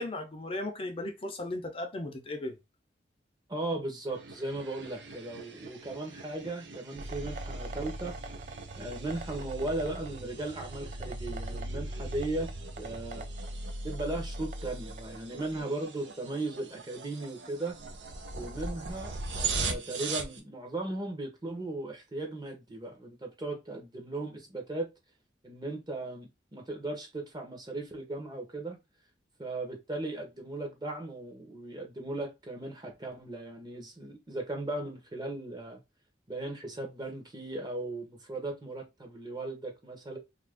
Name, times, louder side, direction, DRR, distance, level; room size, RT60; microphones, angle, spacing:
voice 1, 0.0-2.6, left 1 dB, 30° left, 0.5 m, -36 dB
voice 2, 3.5-8.2 8.8-12.5 12.8-13.3 13.8-17.8 18.3-24.9 25.4-28.8 29.4-35.8 36.3-40.2, right 2 dB, 25° right, 0.8 m, -37 dB
sound 1, 4.1-20.4, right 4 dB, 85° right, 0.7 m, -41 dB
sound 2, 7.0-15.6, right 1 dB, 45° right, 0.4 m, -40 dB
2.8 x 2.5 x 3.4 m
head